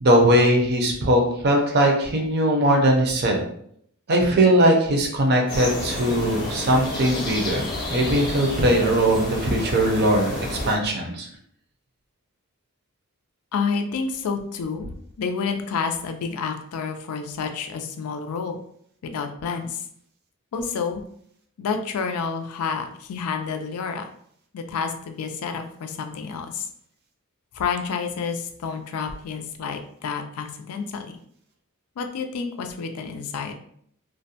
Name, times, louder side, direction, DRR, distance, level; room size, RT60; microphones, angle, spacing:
voice 1, 0.0-3.5 4.1-7.6 7.9-11.3, right 1 dB, 50° right, 1 dB, 0.5 m, -20 dB
sound 1, 5.5-10.7, left 2 dB, 20° left, 0.7 m, -30 dB
voice 2, 13.5-14.9 15.2-18.6 19.0-19.9 20.5-21.0 21.6-24.0 24.5-26.7 27.5-31.2 32.0-33.5, left 5 dB, 85° left, 6 dB, 0.4 m, -29 dB
2.5 x 2.1 x 2.7 m, 0.67 s
head